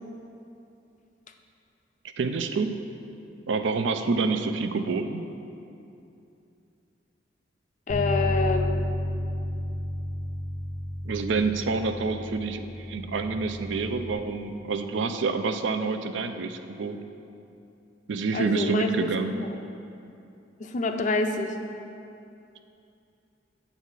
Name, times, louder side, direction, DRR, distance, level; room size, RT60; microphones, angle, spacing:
voice 1, 2.2-2.7 3.5-5.2 11.0-12.6 12.9-17.0 18.1-19.3, right 4 dB, 75° right, 8 dB, 0.4 m, -27 dB
Bass guitar, 7.9-14.1, left 1 dB, 85° left, 1.0 m, -31 dB
voice 2, 7.9-8.8 18.3-19.1 20.6-21.5, left 3 dB, 40° left, 5 dB, 0.5 m, -27 dB
8.1 x 4.0 x 6.3 m, 2.7 s
head